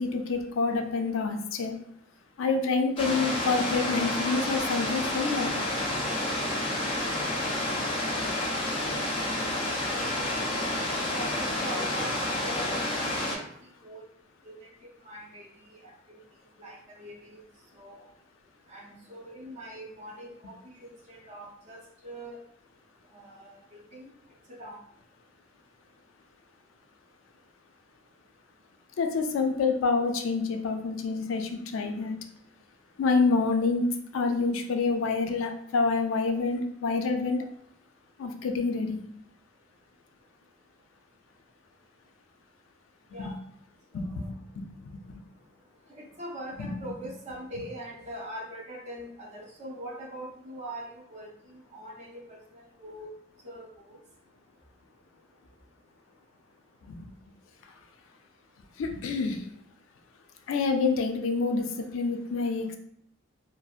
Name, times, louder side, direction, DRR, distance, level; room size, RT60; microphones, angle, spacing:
voice 1, 0.0-1.8 2.4-5.6 29.0-32.2 33.0-37.4 38.2-39.0 43.2-43.3 43.9-45.2 46.6-46.8 56.8-57.0 58.8-59.4 60.5-62.8, left 4 dB, 85° left, 5 dB, 0.3 m, -27 dB
sound 1, 3.0-13.4, left 1 dB, 30° left, 0.5 m, -29 dB
voice 2, 11.1-13.5 13.8-14.0 14.4-14.7 15.0-15.9 16.6-17.4 17.7-18.0 18.7-22.4 23.1-24.1 24.6-24.8 43.1-43.3 43.9-44.1 46.0-53.1 53.4-54.0, right 1 dB, 35° right, -2 dB, 0.4 m, -42 dB
2.5 x 2.1 x 2.3 m, 0.69 s
head